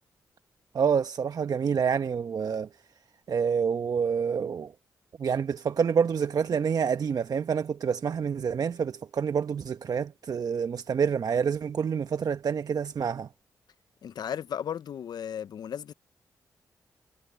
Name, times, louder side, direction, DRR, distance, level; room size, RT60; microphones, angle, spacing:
voice 1, 0.7-2.7 3.3-4.7 5.2-13.3, right 6 dB, 60° right, 1.1 m, -27 dB
voice 2, 14.0-15.9, left 9 dB, 70° left, 0.7 m, -35 dB
supercardioid pair, 45°, 7 cm